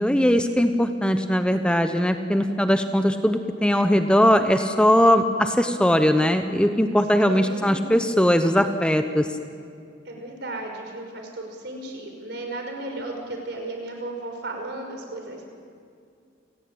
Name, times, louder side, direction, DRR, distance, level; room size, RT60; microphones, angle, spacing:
voice 1, 0.0-9.3, equal, 5° left, 7 dB, 0.9 m, -20 dB
voice 2, 7.2-7.8 10.1-15.4, right 2 dB, 65° right, 3 dB, 5.4 m, -35 dB
29.5 x 19.0 x 8.8 m, 2.3 s
head